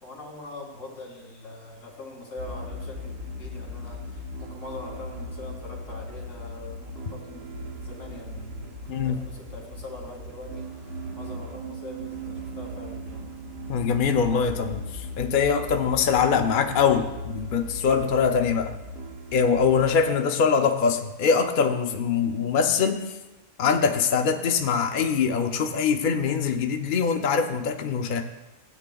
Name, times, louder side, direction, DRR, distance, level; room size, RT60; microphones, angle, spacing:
voice 1, 0.0-10.7 11.1-13.3, left 2 dB, 75° left, -2 dB, 2.9 m, -42 dB
sound 1, 2.4-20.0, equal, 55° right, 1.1 m, -38 dB
voice 2, 8.9-9.2 13.7-18.7 19.3-23.0 23.6-28.2, left 6 dB, 50° left, 4 dB, 0.7 m, -23 dB
16.5 x 8.8 x 2.3 m, 1.1 s
omnidirectional pair, 1.3 m